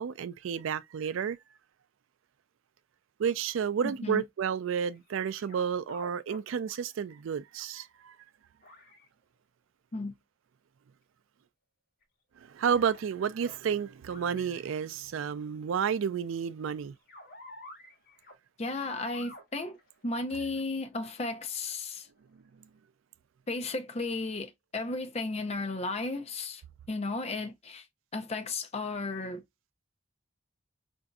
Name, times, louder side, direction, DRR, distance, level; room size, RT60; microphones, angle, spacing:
voice 1, 0.0-1.4 3.2-8.2 12.4-16.9, right 7 dB, 75° right, 0.3 m, -31 dB
voice 2, 3.8-4.2 9.9-10.1 18.6-19.8 20.0-22.1 23.5-26.6 26.9-27.9 28.1-29.4, left 3 dB, 30° left, 0.6 m, -34 dB
sound 1, 4.8-5.6 5.9-6.4 6.7-6.8 7.6-7.7 8.6-9.1 12.0-12.1 12.6-13.0 13.4-13.6 14.1-14.8 16.8-18.3 19.1-21.1 21.8-21.9 22.3-22.4, left 1 dB, 45° left, 1.2 m, -50 dB
4.8 x 2.6 x 2.3 m
head